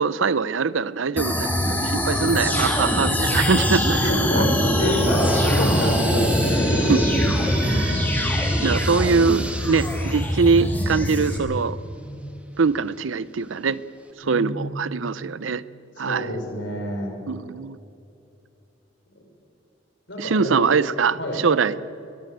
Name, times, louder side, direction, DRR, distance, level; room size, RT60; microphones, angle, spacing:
voice 1, 0.0-4.0 4.3-4.4 6.9-7.0 7.6-8.1 8.6-11.8 12.6-13.8 14.2-15.6 16.0-16.3 17.3-17.8 20.2-21.8, right 5 dB, 80° right, 17 dB, 0.6 m, -22 dB
sound 1, 1.2-11.4, equal, 10° left, 2.7 m, -23 dB
voice 2, 3.9-4.5 4.8-7.6 12.0-12.2 14.2-15.2 16.0-17.1 20.1-20.7 21.2-21.4, equal, 65° left, 1 dB, 5.7 m, -27 dB
sound 2, 4.6-12.2 12.7-12.8 13.6-13.7 14.1-14.2, right 1 dB, 5° right, 1.6 m, -35 dB
21.5 x 15.5 x 9.3 m, 2.8 s
head